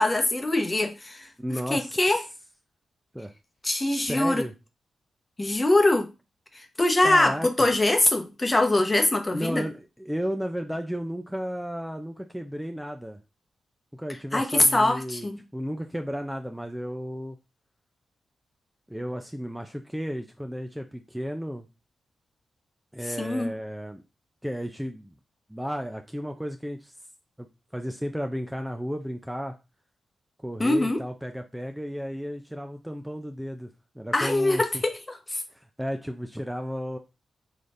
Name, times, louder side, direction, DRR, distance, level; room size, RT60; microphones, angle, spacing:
voice 1, 0.0-1.3 1.7-2.2 3.6-4.4 5.4-6.1 6.8-9.6 14.3-15.4 23.2-23.5 30.6-31.0 34.1-35.4, left 2 dB, 30° left, 0.9 m, -23 dB
voice 2, 1.4-2.0 3.1-3.3 3.9-4.5 7.0-7.5 9.3-13.2 13.9-17.4 18.9-21.7 22.9-24.0 24.4-25.1 25.5-26.9 27.4-27.5 27.7-29.6 30.4-33.7 34.0-34.8 35.5-37.0, equal, 5° right, 0.5 m, -33 dB
4.0 x 3.2 x 2.5 m
supercardioid pair, 45°, 0 cm